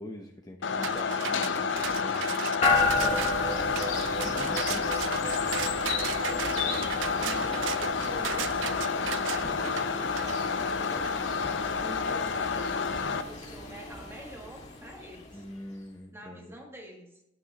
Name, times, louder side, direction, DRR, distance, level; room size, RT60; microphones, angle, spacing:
voice 1, 0.0-2.4 3.0-3.3 3.9-4.9 15.3-16.5, left 1 dB, 20° left, 2 dB, 0.8 m, -43 dB
sound 1, 0.6-13.2, left 5 dB, 90° left, 0.7 m, -30 dB
sound 2, 0.8-11.2, right 11 dB, 80° right, 0.3 m, -37 dB
sound 3, 2.6-15.6, left 3 dB, 40° left, 2.0 m, -33 dB
voice 2, 6.2-7.7 8.0-15.4 16.1-17.2, right 1 dB, 15° right, 0 dB, 1.8 m, -47 dB
9.8 x 9.1 x 3.0 m, 0.87 s
head